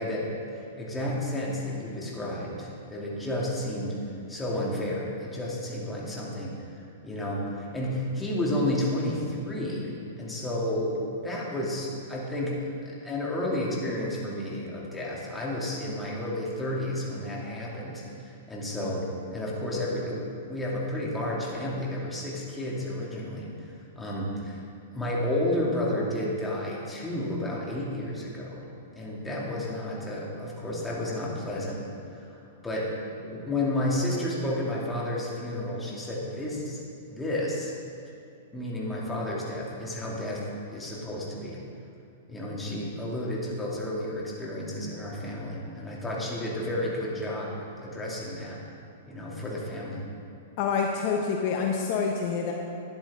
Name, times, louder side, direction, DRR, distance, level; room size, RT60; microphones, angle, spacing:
voice 1, 0.0-4.0 4.3-12.6 12.8-24.6 24.9-28.6 29.0-32.4 32.6-36.8 37.1-37.7 38.5-40.4 40.7-41.6 42.3-47.5 47.8-48.6 49.1-50.1, left 1 dB, 10° left, -5 dB, 2.8 m, -31 dB
voice 2, 50.6-52.5, left 5 dB, 50° left, 1 dB, 1.1 m, -27 dB
12.5 x 10.0 x 3.8 m, 2.7 s
hypercardioid pair, 115°, 0 cm